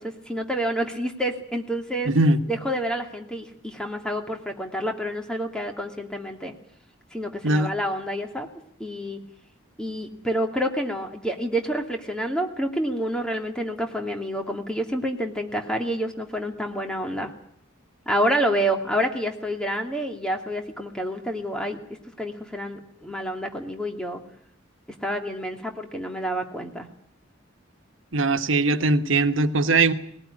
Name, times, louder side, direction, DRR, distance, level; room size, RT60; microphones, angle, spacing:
voice 1, 0.0-2.1 2.5-6.5 7.1-8.5 8.8-9.2 9.8-17.3 18.1-21.8 22.2-24.2 25.0-26.9, equal, 5° left, 3 dB, 2.6 m, -28 dB
voice 2, 2.1-2.4 7.4-7.7 28.1-29.9, right 2 dB, 85° right, 8 dB, 1.4 m, -20 dB
20.0 x 18.0 x 9.9 m, 0.66 s
head